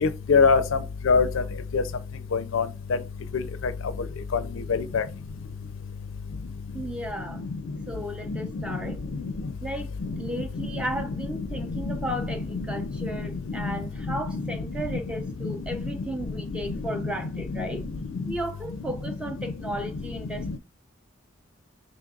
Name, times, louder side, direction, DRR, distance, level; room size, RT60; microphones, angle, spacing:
voice 1, 0.0-0.6 1.1-1.3 1.7-1.8 2.3-2.7 3.3-3.4 4.7-5.0 8.3-8.4 11.9-12.0 13.5-13.6 14.3-14.4 15.4-15.5 20.4-20.5, left 5 dB, 75° left, 0.4 m, -21 dB
voice 2, 6.7-7.5 7.9-9.0 9.6-17.9 18.2-20.6, right 1 dB, 5° right, 0.6 m, -34 dB
5.1 x 3.1 x 2.3 m
head